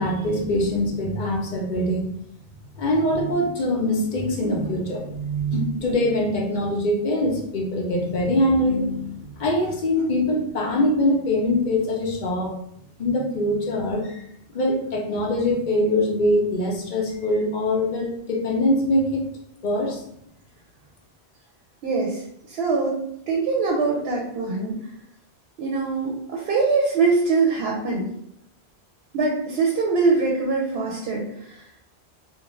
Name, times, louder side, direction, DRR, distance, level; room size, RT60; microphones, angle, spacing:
voice 1, 0.0-2.1 2.8-12.5 13.0-14.3 14.5-19.3 19.6-20.0, left 1 dB, 55° left, 0 dB, 0.6 m, -23 dB
voice 2, 21.8-24.8 25.6-28.1 29.1-31.7, right 4 dB, 70° right, -2 dB, 0.8 m, -23 dB
2.5 x 2.1 x 3.0 m, 0.71 s
omnidirectional pair, 1.1 m